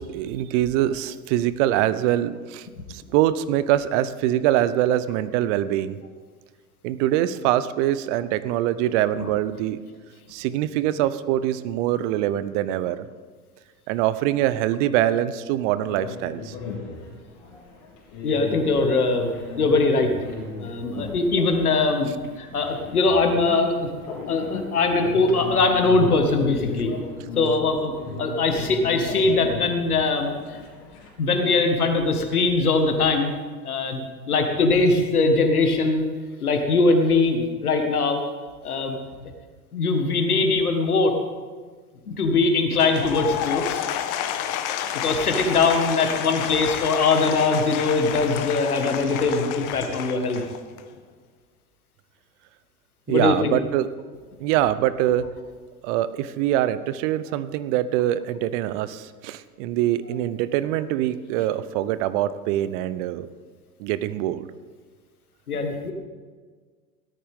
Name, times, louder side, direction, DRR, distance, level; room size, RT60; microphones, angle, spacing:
voice 1, 0.0-6.0 6.8-9.8 10.3-13.1 13.9-16.5 53.1-53.9 54.4-55.2 55.8-63.3 63.8-64.5, right 12 dB, 55° right, 15 dB, 0.8 m, -24 dB
sound 1, 15.8-31.1, left 4 dB, 65° left, 3.6 m, -37 dB
voice 2, 18.2-19.3 19.6-20.1 20.6-22.1 22.4-23.9 24.3-26.9 27.4-30.6 31.2-33.3 33.6-34.0 34.3-36.1 36.4-38.3 38.6-39.0 39.7-41.2 42.1-43.8 45.0-50.4 53.1-53.5 65.5-65.9, left 3 dB, 85° left, 5 dB, 1.9 m, -21 dB
Applause / Crowd, 42.7-50.9, left 10 dB, 45° left, 1.3 m, -30 dB
17.5 x 13.0 x 3.7 m, 1.5 s
hypercardioid pair, 85°, 43 cm